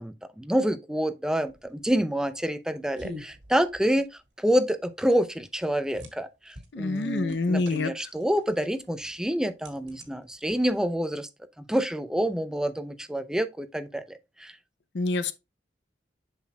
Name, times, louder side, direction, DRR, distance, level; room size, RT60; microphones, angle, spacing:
voice 1, 0.0-4.1 4.4-11.3 11.7-14.5, equal, 5° right, 0.4 m, -27 dB
sound 1, 1.5-11.0, equal, 90° right, 1.7 m, -48 dB
voice 2, 6.7-7.9 14.9-15.3, left 3 dB, 80° left, 0.6 m, -26 dB
7.2 x 5.9 x 2.3 m
head